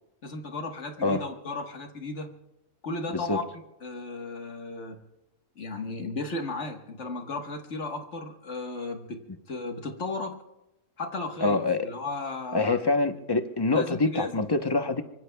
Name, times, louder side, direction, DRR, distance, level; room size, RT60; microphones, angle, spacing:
voice 1, 0.2-2.3 2.8-3.4 3.8-5.0 5.5-9.2 9.5-10.4 11.0-12.8 13.7-14.3, left 3 dB, 70° left, 4 dB, 1.6 m, -35 dB
voice 2, 11.4-11.9 12.5-15.0, left 3 dB, 25° left, 7 dB, 0.8 m, -25 dB
25.0 x 24.0 x 2.3 m, 0.91 s
omnidirectional pair, 1.3 m